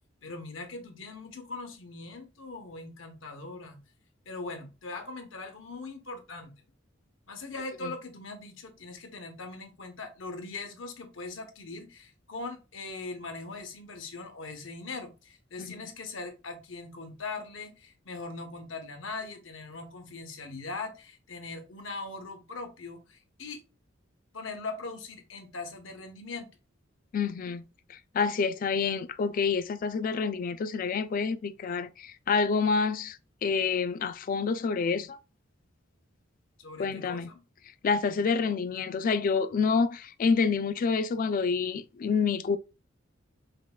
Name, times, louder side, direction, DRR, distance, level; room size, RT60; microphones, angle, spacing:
voice 1, 0.2-3.8 4.3-6.5 7.3-23.6 24.3-26.5 36.6-37.4, left 3 dB, 70° left, 0.8 m, -40 dB
voice 2, 27.1-27.6 27.9-35.2 36.8-37.3 37.8-42.6, left 5 dB, 45° left, 0.3 m, -28 dB
5.2 x 2.4 x 2.2 m
head